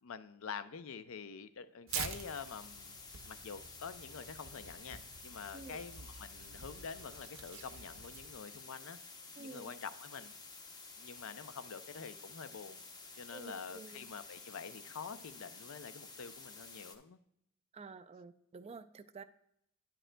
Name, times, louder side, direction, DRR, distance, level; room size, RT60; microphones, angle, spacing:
voice 1, 0.0-2.9 3.2-9.0 9.4-10.3 11.0-12.8 13.2-17.2, left 6 dB, 80° left, 12 dB, 0.5 m, -47 dB
sound 1, 1.9-17.0, left 4 dB, 20° left, 0.7 m, -52 dB
Tearing, 1.9-8.4, right 7 dB, 70° right, 0.6 m, -47 dB
voice 2, 9.4-9.7 13.3-14.0 17.7-19.2, right 4 dB, 30° right, 12 dB, 0.3 m, -50 dB
9.9 x 8.9 x 2.2 m, 0.77 s
head